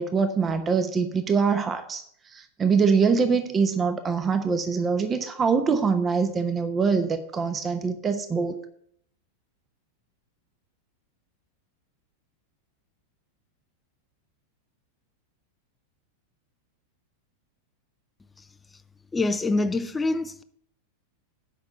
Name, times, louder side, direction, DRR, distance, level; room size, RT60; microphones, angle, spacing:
voice 1, 0.0-2.0 2.3-8.6, right 5 dB, 20° right, 0.9 m, -24 dB
voice 2, 19.1-20.4, left 2 dB, 10° left, 0.6 m, -25 dB
8.2 x 5.8 x 7.9 m
figure-of-eight pair, 90°, 0 cm